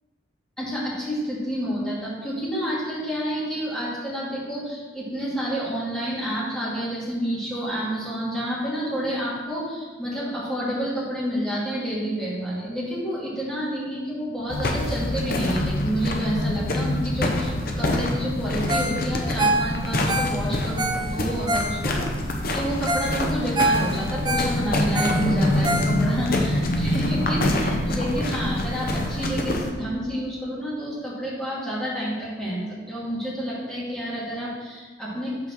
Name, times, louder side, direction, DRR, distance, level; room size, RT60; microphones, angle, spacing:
voice 1, 0.6-22.0 22.5-35.5, equal, 5° left, -9 dB, 2.3 m, -29 dB
sound 1, 14.5-29.7, left 1 dB, 50° left, 0.8 m, -25 dB
Ringtone, 18.7-19.0 19.2-22.1 22.6-22.7 22.9-23.1 23.4-26.3 26.7-26.8, right 2 dB, 25° right, 0.6 m, -26 dB
5.7 x 4.5 x 6.1 m, 1.3 s
head